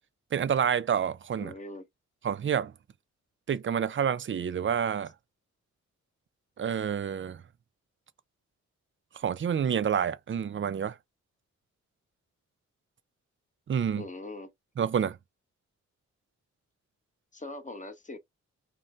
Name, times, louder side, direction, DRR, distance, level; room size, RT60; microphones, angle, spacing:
voice 1, 0.3-1.5 2.2-2.7 3.5-5.1 6.6-7.4 9.1-11.0 13.7-14.1 14.8-15.2, right 8 dB, 40° right, 0.4 m, -28 dB
voice 2, 1.4-1.8 14.0-14.5 17.3-18.2, left 2 dB, 25° left, 0.9 m, -41 dB
2.6 x 2.1 x 3.1 m
cardioid pair, 60°, 30 cm